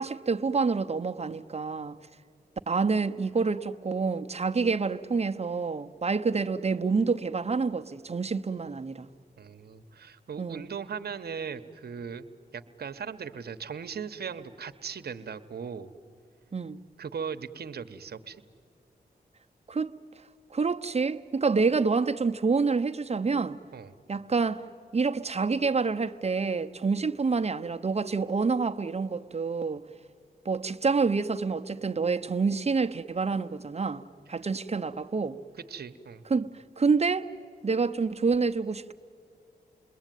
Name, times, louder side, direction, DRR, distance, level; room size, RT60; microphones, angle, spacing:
voice 1, 0.0-2.0 2.7-9.1 10.4-10.7 16.5-16.8 19.7-19.9 20.5-23.6 24.1-24.6 24.9-29.8 30.4-34.0 34.3-35.4 36.3-36.5 36.8-37.3 37.6-38.9, right 4 dB, 40° right, 0.9 m, -27 dB
voice 2, 9.4-12.2 12.5-15.9 17.0-18.4 23.7-23.9 35.7-36.2, right 6 dB, 65° right, 1.1 m, -38 dB
28.5 x 21.0 x 9.2 m
cardioid pair, 60°, 17 cm